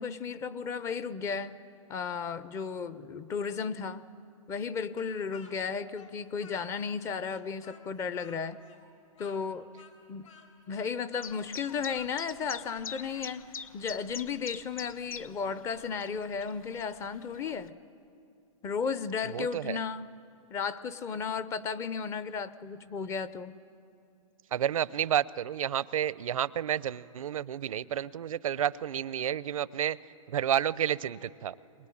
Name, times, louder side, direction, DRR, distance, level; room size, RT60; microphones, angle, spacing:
voice 1, 0.0-1.6 1.9-4.1 4.5-8.6 9.2-9.7 10.1-10.3 10.7-13.4 13.7-17.8 18.6-20.1 20.5-23.5, left 6 dB, 15° left, 15 dB, 0.5 m, -34 dB
Speech, 5.0-7.0 7.3-13.3, left 6 dB, 70° left, 4.5 m, -55 dB
Chirp tweet, 11.2-17.7, left 7 dB, 85° left, 1.1 m, -44 dB
voice 2, 19.3-19.8 24.5-30.0 30.3-31.5, right 10 dB, 80° right, 19 dB, 0.7 m, -30 dB
23.0 x 21.0 x 10.0 m, 2.5 s
hypercardioid pair, 150°, 17 cm